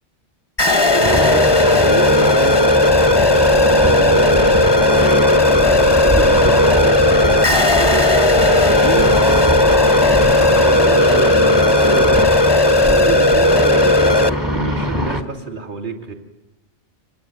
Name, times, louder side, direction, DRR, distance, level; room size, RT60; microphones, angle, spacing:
sound 1, 0.6-14.3, left 1 dB, 20° left, 1.0 m, -14 dB
sound 2, 1.0-15.2, left 1 dB, 20° right, 1.8 m, -21 dB
voice 1, 1.0-4.9 5.5-9.8 10.6-12.3 12.9-13.5 14.5-16.1, right 4 dB, 45° right, 0 dB, 3.1 m, -30 dB
26.0 x 20.5 x 9.3 m, 1.1 s
omnidirectional pair, 1.2 m